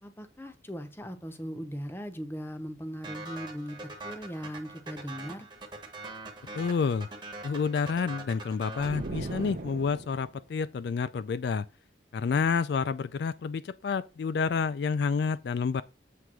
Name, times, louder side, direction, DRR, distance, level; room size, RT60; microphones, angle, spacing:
voice 1, 0.0-3.8 4.0-5.5, equal, 10° left, 0.7 m, -39 dB
sound 1, 3.0-9.7, right 2 dB, 25° right, 1.1 m, -43 dB
voice 2, 6.5-7.1 7.4-11.7 12.1-15.8, left 5 dB, 60° left, 0.3 m, -29 dB
sound 2, 8.8-10.4, right 2 dB, 50° right, 0.6 m, -38 dB
7.7 x 3.4 x 6.1 m
head